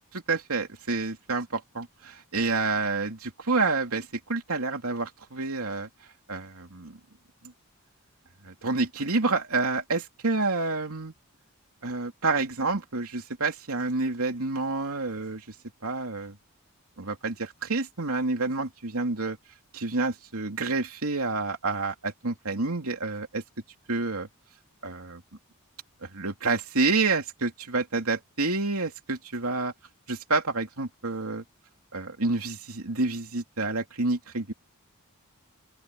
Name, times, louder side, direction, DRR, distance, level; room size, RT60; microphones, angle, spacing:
voice 1, 0.3-5.9 6.3-7.0 8.4-11.1 11.8-15.5 15.8-16.3 17.0-19.4 19.7-23.4 23.9-24.3 24.8-25.2 26.0-29.7 30.1-31.4 31.9-34.5, right 3 dB, 80° right, 2.9 m, -28 dB
open air
head